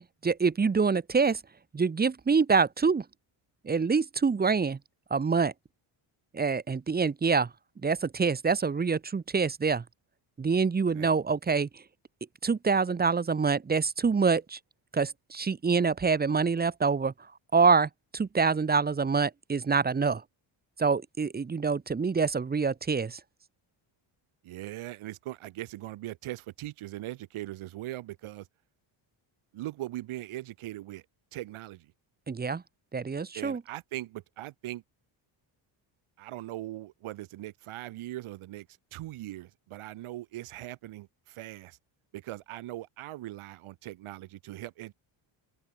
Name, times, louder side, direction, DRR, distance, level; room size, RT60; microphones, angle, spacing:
voice 1, 0.0-1.4 1.7-3.0 3.6-4.8 5.1-5.5 6.3-7.5 7.8-9.8 10.4-11.8 12.4-14.6 14.9-17.1 17.5-20.2 20.8-23.2 32.3-32.6 32.9-33.6, right 5 dB, 20° right, 1.1 m, -26 dB
voice 2, 24.4-28.5 29.5-31.0 31.3-31.9 33.3-34.8 36.2-41.8 42.1-44.9, right 15 dB, 80° right, 2.5 m, -40 dB
cardioid pair, 165°, 49 cm